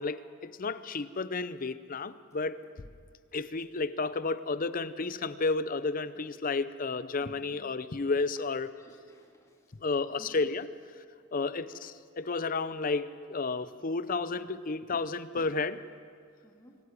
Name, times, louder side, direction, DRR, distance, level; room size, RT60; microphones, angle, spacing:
voice 1, 0.0-2.6 3.3-8.7 9.8-10.7 11.3-15.8, left 3 dB, 40° left, 14 dB, 0.6 m, -32 dB
voice 2, 8.8-9.7 10.2-10.3 11.4-11.5 12.2-12.3 16.4-16.8, equal, 15° left, 0 dB, 2.5 m, -58 dB
24.0 x 13.0 x 9.7 m, 2.2 s
head